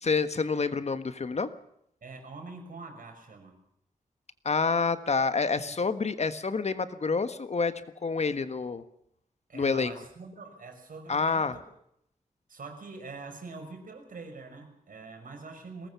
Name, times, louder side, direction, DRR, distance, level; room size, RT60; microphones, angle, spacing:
voice 1, 0.0-1.5 4.4-7.7 8.0-8.8 9.5-9.9 11.1-11.5, left 4 dB, 50° left, 11 dB, 1.5 m, -28 dB
voice 2, 2.0-3.6 5.7-5.8 9.5-11.6 12.5-15.9, right 3 dB, 70° right, 4 dB, 5.9 m, -44 dB
22.0 x 19.5 x 7.0 m, 0.75 s
wide cardioid pair, 125°, 14 cm